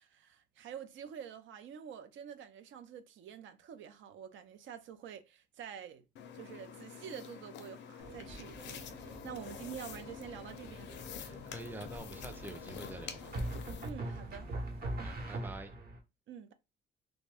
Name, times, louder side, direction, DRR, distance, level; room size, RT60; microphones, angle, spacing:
voice 1, 0.0-6.0 6.3-10.9 13.8-14.5 16.3-16.5, right 8 dB, 75° right, 0.5 m, -47 dB
sound 1, 6.2-13.9, left 8 dB, 65° left, 0.4 m, -48 dB
sound 2, 8.0-15.4, right 1 dB, 90° right, 0.9 m, -52 dB
sound 3, 10.7-11.2 13.3-16.0, right 1 dB, 50° right, 1.0 m, -39 dB
voice 2, 11.2-13.3 15.0-15.7, right 2 dB, 10° right, 0.5 m, -46 dB
2.5 x 2.2 x 3.3 m
cardioid pair, 90°, 20 cm